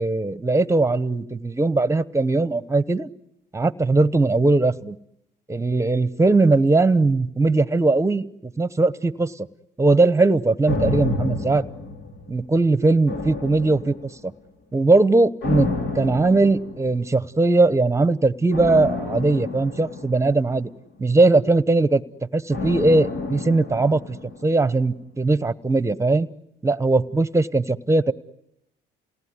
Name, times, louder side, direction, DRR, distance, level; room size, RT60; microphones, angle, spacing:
voice 1, 0.0-3.1 3.5-5.0 5.5-9.5 9.8-11.7 12.3-13.9 14.7-20.7 21.0-22.0 22.3-24.0 24.4-26.3 26.6-28.1, right 3 dB, 15° right, 17 dB, 1.0 m, -20 dB
sound 1, 10.7-12.6 13.1-14.3 15.4-17.1 18.5-20.9 22.5-24.7 25.0-25.1, left 3 dB, 75° left, 3.8 m, -30 dB
28.5 x 18.5 x 9.8 m, 0.82 s
cardioid pair, 95°, 19 cm